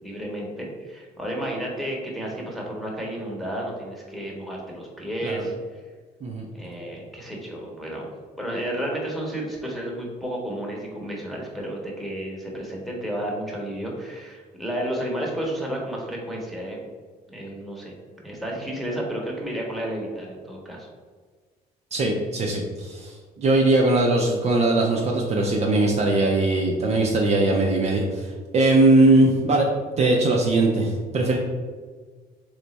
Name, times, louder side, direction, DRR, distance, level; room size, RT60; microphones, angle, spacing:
voice 1, 0.0-5.5 6.5-8.1 8.4-16.8 17.3-17.9 18.2-20.9, right 1 dB, ahead, -2 dB, 1.0 m, -32 dB
voice 2, 21.9-29.7 30.0-31.4, right 2 dB, 40° right, 0 dB, 0.5 m, -20 dB
3.3 x 3.1 x 4.1 m, 1.5 s
cardioid pair, 110°, 17 cm